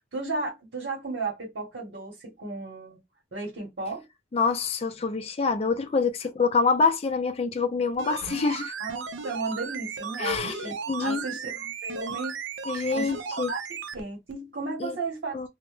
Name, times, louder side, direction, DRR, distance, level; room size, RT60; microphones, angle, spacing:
voice 1, 0.0-3.0 3.3-4.1 8.8-11.5 11.8-12.4 12.9-15.5, right 3 dB, 65° right, 0.9 m, -34 dB
voice 2, 4.3-8.8 10.2-11.3 12.7-13.5 14.8-14.9 15.3-15.5, left 4 dB, 35° left, 0.3 m, -26 dB
sound 1, 7.9-14.0 14.3-14.4, right 6 dB, 90° right, 0.4 m, -36 dB
2.1 x 2.0 x 3.0 m
head